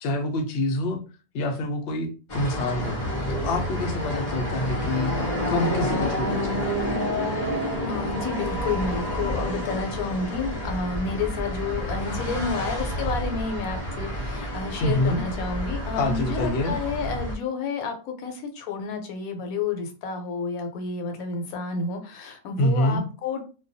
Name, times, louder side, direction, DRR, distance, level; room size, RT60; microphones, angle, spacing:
voice 1, 0.0-1.0 1.3-3.0 3.3-5.1 5.5-6.8 14.8-15.2 15.9-16.8 22.6-23.1, left 1 dB, 65° left, 4 dB, 0.6 m, -26 dB
sound 1, 2.3-17.4, equal, 35° left, 0.8 m, -29 dB
voice 2, 7.9-23.4, left 4 dB, 80° left, 5 dB, 1.1 m, -30 dB
2.2 x 2.2 x 2.6 m, 0.34 s
omnidirectional pair, 1.5 m